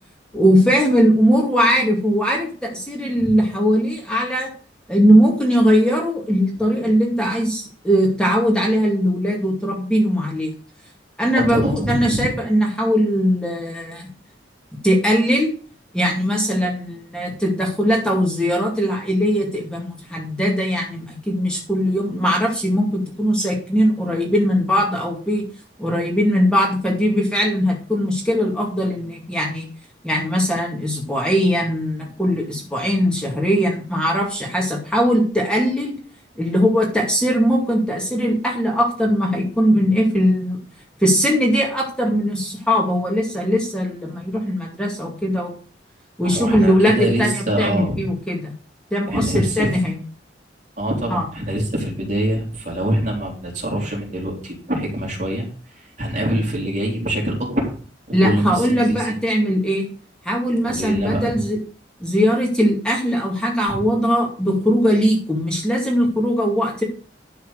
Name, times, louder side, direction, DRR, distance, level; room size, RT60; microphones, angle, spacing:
voice 1, 0.3-4.5 4.9-10.5 11.2-14.1 14.8-15.5 15.9-25.4 25.8-29.7 30.0-35.9 36.4-40.6 41.0-45.5 46.2-48.5 48.9-50.0 51.1-51.2 58.1-59.9 60.2-61.6 62.0-66.8, equal, 5° left, -1 dB, 2.4 m, -20 dB
voice 2, 11.3-12.3 46.2-48.1 49.1-49.7 50.8-55.5 55.8-57.7 58.2-59.1 60.6-61.3 63.7-63.8, right 1 dB, 40° right, -1 dB, 3.6 m, -24 dB
11.5 x 4.5 x 6.5 m, 0.39 s
head